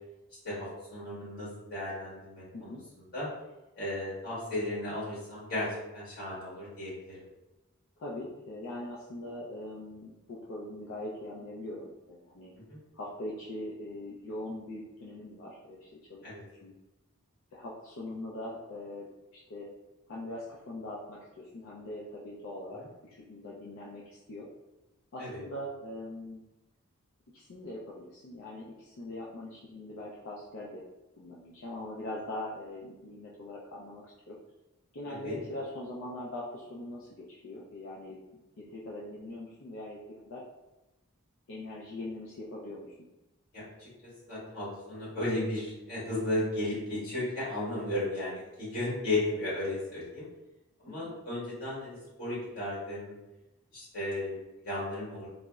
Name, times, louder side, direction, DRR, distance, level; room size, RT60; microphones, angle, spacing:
voice 1, 0.4-2.7 3.1-3.3 3.8-5.7 5.9-7.2 12.7-12.8 16.2-16.4 25.2-25.4 35.1-35.4 43.5-50.3 50.8-53.1 53.7-55.3, left 1 dB, 45° left, -8 dB, 1.5 m, -35 dB
voice 2, 8.0-12.5 12.9-16.3 16.6-16.7 17.5-19.7 20.1-22.8 23.1-24.5 25.1-26.4 27.3-30.8 31.2-34.4 34.9-38.2 38.6-40.0 40.2-40.4 41.5-42.9 50.9-51.1, left 1 dB, 70° left, -5 dB, 0.4 m, -42 dB
3.9 x 2.0 x 2.3 m, 0.99 s
head